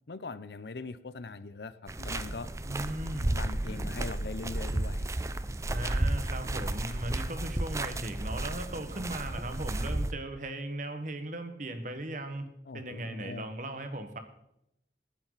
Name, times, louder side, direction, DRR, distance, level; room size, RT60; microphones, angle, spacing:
voice 1, 0.1-2.5 3.3-5.1 12.7-13.4, left 3 dB, 70° left, 14 dB, 0.7 m, -41 dB
sound 1, 1.9-10.1, right 1 dB, 15° right, 0.5 m, -33 dB
voice 2, 2.6-3.3 5.7-12.5 12.7-14.2, right 1 dB, 45° right, 7 dB, 1.5 m, -38 dB
19.5 x 10.5 x 4.1 m, 0.80 s
head